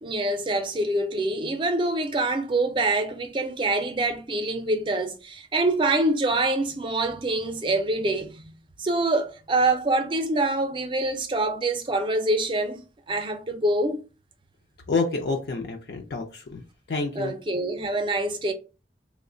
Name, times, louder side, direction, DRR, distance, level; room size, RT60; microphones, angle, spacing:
voice 1, 0.0-8.4 8.8-14.0 17.1-18.5, right 2 dB, 30° right, 0.5 m, -25 dB
voice 2, 14.9-16.6 16.9-17.3, left 3 dB, 65° left, 0.5 m, -28 dB
3.1 x 2.1 x 3.7 m
head